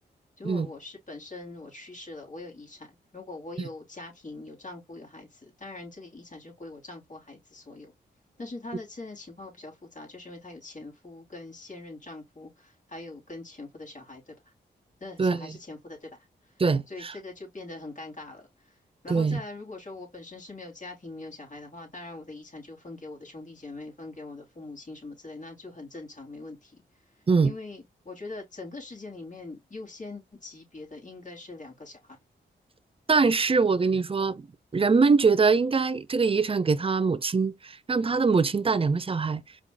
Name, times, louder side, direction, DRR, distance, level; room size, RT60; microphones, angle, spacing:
voice 1, 0.4-2.9 3.1-7.9 8.4-14.3 15.0-16.1 16.9-18.5 19.0-26.8 27.4-32.2, left 2 dB, 40° left, 2.9 m, -42 dB
voice 2, 15.2-15.6 16.6-17.1 19.1-19.4 27.3-27.5 33.1-34.5 34.7-39.4, right 4 dB, 30° right, 0.6 m, -23 dB
4.9 x 3.7 x 2.2 m
cardioid pair, 45°, 20 cm